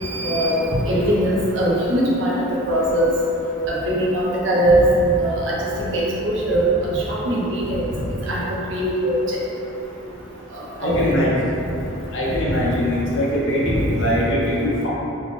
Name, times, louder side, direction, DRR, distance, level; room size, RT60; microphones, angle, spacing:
voice 1, 0.0-2.3 2.7-3.1 3.7-4.8 5.2-6.7 6.9-7.9 8.3-8.4 8.7-9.2 10.8-11.2, right 1 dB, 60° right, -5 dB, 0.7 m, -21 dB
voice 2, 10.8-11.3 12.1-14.9, left 1 dB, 60° left, -6 dB, 0.7 m, -21 dB
3.8 x 2.8 x 3.0 m, 3.0 s
head